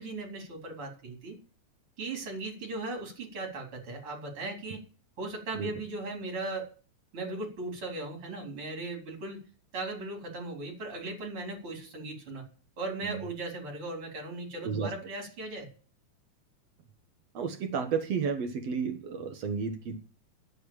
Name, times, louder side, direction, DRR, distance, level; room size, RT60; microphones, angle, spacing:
voice 1, 0.0-1.4 2.0-4.8 5.2-6.7 7.1-9.4 9.7-12.4 12.8-15.7, right 2 dB, 40° right, 1 dB, 4.7 m, -38 dB
voice 2, 17.3-20.0, right 6 dB, 60° right, 6 dB, 2.2 m, -32 dB
10.5 x 8.2 x 8.8 m, 0.38 s
omnidirectional pair, 3.6 m